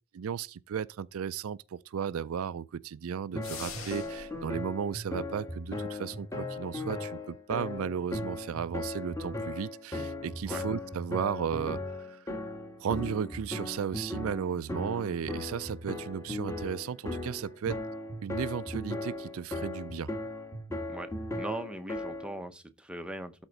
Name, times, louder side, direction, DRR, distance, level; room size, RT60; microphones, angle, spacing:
voice 1, 0.1-12.2 12.8-17.8 18.2-20.1, right 7 dB, 75° right, 0.4 m, -35 dB
sound 1, 3.3-22.4, left 2 dB, 15° left, 1.5 m, -37 dB
sound 2, 3.4-4.4, left 5 dB, 80° left, 2.3 m, -42 dB
voice 2, 20.9-23.5, right 1 dB, 5° right, 0.7 m, -40 dB
12.5 x 4.4 x 3.9 m
head